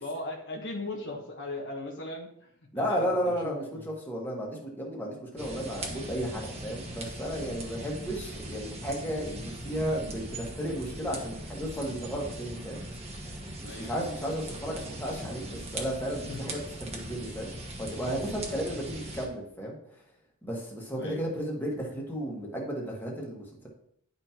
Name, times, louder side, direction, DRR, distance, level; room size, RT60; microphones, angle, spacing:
voice 1, 0.0-3.9 13.6-14.1 16.3-16.4 18.4-18.6 21.0-21.2, left 2 dB, 60° left, 1 dB, 1.2 m, -39 dB
voice 2, 2.7-12.8 13.6-16.6 16.9-17.5 17.8-19.8 20.4-23.4, equal, 10° left, -3 dB, 1.7 m, -33 dB
sound 1, 5.4-19.3, right 1 dB, 30° right, 1.3 m, -40 dB
10.5 x 5.5 x 3.0 m, 0.70 s
head